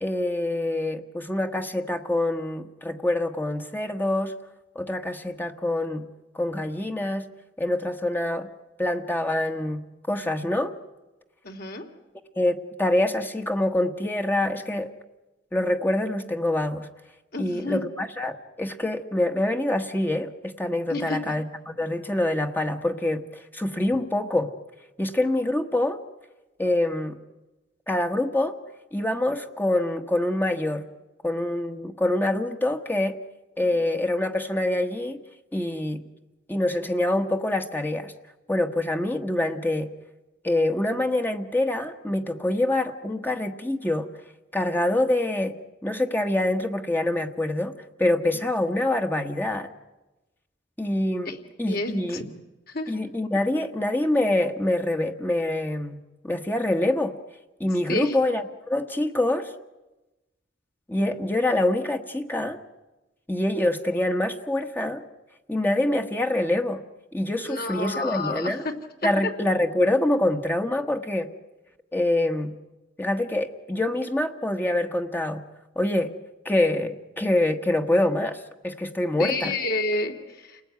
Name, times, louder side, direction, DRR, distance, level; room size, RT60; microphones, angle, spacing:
voice 1, 0.0-4.3 4.7-6.1 6.3-7.3 7.6-8.5 8.8-9.8 10.1-10.7 12.4-14.9 15.5-16.9 17.4-24.5 25.0-26.0 26.6-27.2 27.9-28.5 28.9-30.8 31.2-33.2 33.6-35.2 35.5-36.0 36.5-38.1 38.5-39.9 40.4-44.1 44.5-45.5 45.8-47.7 48.0-49.7 50.8-52.2 52.9-57.1 57.6-59.5 60.9-62.6 63.3-65.0 65.5-66.8 67.1-68.6 69.0-71.3 71.9-72.5 73.0-75.4 75.7-76.1 76.4-79.5, left 1 dB, 10° left, 5 dB, 1.3 m, -25 dB
voice 2, 11.4-11.8 17.3-17.8 20.9-21.2 33.6-33.8 51.2-51.4 51.7-52.2 52.7-52.9 57.9-58.2 67.4-68.5 79.2-80.6, left 2 dB, 55° left, 5 dB, 2.9 m, -30 dB
29.5 x 19.5 x 9.5 m, 1.1 s
head